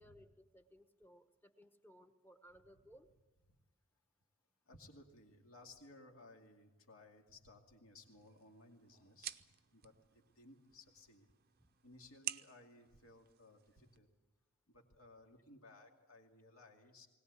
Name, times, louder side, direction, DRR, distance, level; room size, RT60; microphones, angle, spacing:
voice 1, 0.0-3.1 11.6-11.7, equal, 10° left, 7 dB, 1.0 m, -62 dB
voice 2, 4.7-11.3 11.8-14.1 14.7-17.1, left 2 dB, 70° left, 2 dB, 2.4 m, -60 dB
sound 1, 8.0-14.0, right 12 dB, 45° right, 0.6 m, -51 dB
21.0 x 18.5 x 8.3 m, 1.2 s
head